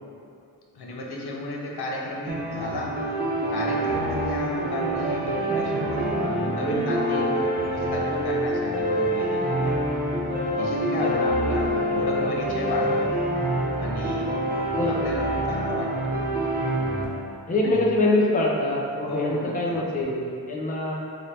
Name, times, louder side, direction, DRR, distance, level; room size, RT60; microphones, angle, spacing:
voice 1, 0.7-3.2 3.5-7.3 7.6-9.8 10.5-13.1 13.8-14.4 14.8-16.2 17.6-17.9 19.1-19.8, left 1 dB, 90° left, -2 dB, 0.6 m, -33 dB
sound 1, 2.3-17.0, right 1 dB, 25° right, 0.5 m, -26 dB
sound 2, 3.7-9.1 9.6-14.5, right 2 dB, 75° right, 0.5 m, -34 dB
voice 2, 10.9-11.3 11.6-12.0 14.7-15.2 17.5-20.9, left 2 dB, 20° left, -3 dB, 0.5 m, -25 dB
3.8 x 2.1 x 3.3 m, 2.4 s
wide cardioid pair, 100°, 38 cm